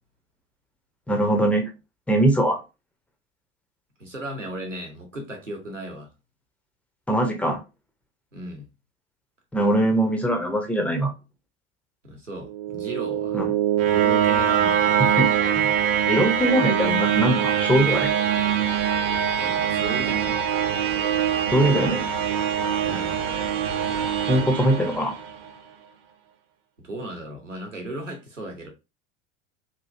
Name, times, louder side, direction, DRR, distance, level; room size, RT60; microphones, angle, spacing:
voice 1, 1.1-1.6 2.1-2.6 7.1-7.6 9.5-11.1 13.3-13.5 15.2-15.7 16.1-18.1 21.5-22.0 24.3-25.1, right 1 dB, 5° left, 0.3 m, -22 dB
voice 2, 4.0-6.1 8.3-8.7 12.0-13.4 13.8-15.3 19.4-20.4 22.8-23.2 26.8-28.7, right 1 dB, 90° right, 0.8 m, -36 dB
sound 1, 12.4-25.5, right 9 dB, 50° right, 0.6 m, -23 dB
3.1 x 2.4 x 2.4 m
figure-of-eight pair, 70°, 37 cm